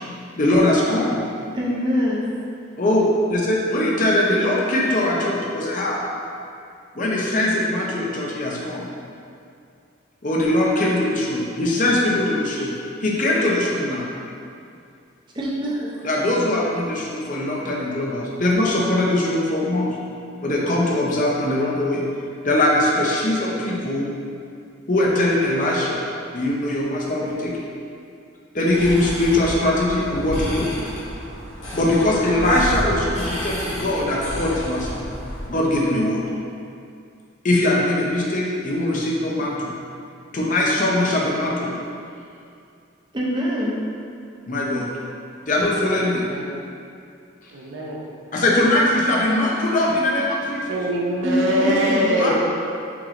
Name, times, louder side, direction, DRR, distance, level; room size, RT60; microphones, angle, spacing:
voice 1, 0.4-1.2 2.8-6.0 6.9-8.8 10.2-12.7 13.0-14.1 16.0-19.9 20.4-22.0 22.4-24.1 24.9-26.0 26.3-27.6 28.5-30.7 31.7-35.0 35.5-36.2 37.4-39.7 40.3-41.7 44.5-44.9 45.5-46.2 48.3-50.7 52.0-52.3, left 1 dB, 40° left, -3 dB, 0.6 m, -21 dB
voice 2, 1.5-2.3 15.3-16.0 43.1-43.8 51.2-52.2, equal, 20° right, -4 dB, 0.5 m, -24 dB
sound 1, 28.7-35.5, equal, 70° left, 1.4 m, -31 dB
voice 3, 46.2-46.5 47.5-48.0 50.7-52.3, right 1 dB, 70° right, -3 dB, 0.7 m, -23 dB
5.9 x 3.0 x 2.5 m, 2.5 s
head